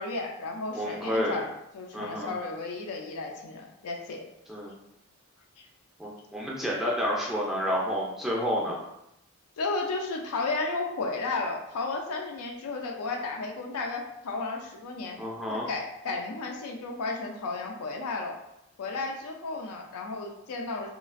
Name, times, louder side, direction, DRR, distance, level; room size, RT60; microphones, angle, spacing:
voice 1, 0.0-1.5 1.7-4.2 5.6-5.7 9.6-15.2 15.5-18.3 18.8-20.9, left 3 dB, 85° left, 1 dB, 0.4 m, -33 dB
voice 2, 0.7-1.4 1.9-2.3 4.5-4.8 6.0-8.8 15.2-15.7, equal, ahead, -4 dB, 0.4 m, -30 dB
2.9 x 2.4 x 2.4 m, 0.84 s
head